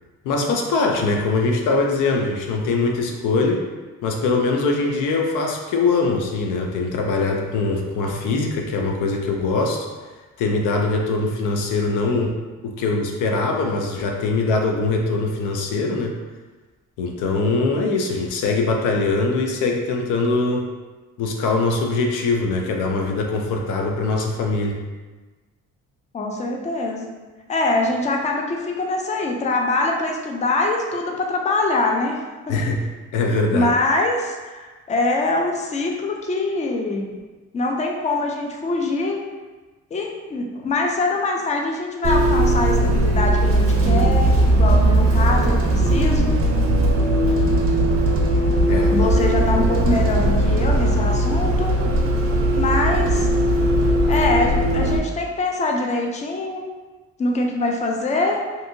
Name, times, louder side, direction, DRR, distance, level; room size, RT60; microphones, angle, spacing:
voice 1, 0.2-3.6 4.0-9.9 10.4-12.3 12.6-16.1 17.0-20.7 21.2-24.8 32.5-32.8 33.1-33.7 48.7-48.9, left 3 dB, 90° left, 2 dB, 0.5 m, -22 dB
voice 2, 26.1-27.1 27.5-32.7 33.5-37.1 37.5-39.2 39.9-46.3 48.9-51.7 52.6-53.3 54.1-56.6 57.2-58.4, left 2 dB, 25° left, 1 dB, 0.4 m, -23 dB
Bus, 42.0-55.0, right 1 dB, 45° right, 0.5 m, -18 dB
2.6 x 2.6 x 2.6 m, 1.3 s
cardioid pair, 90°, 30 cm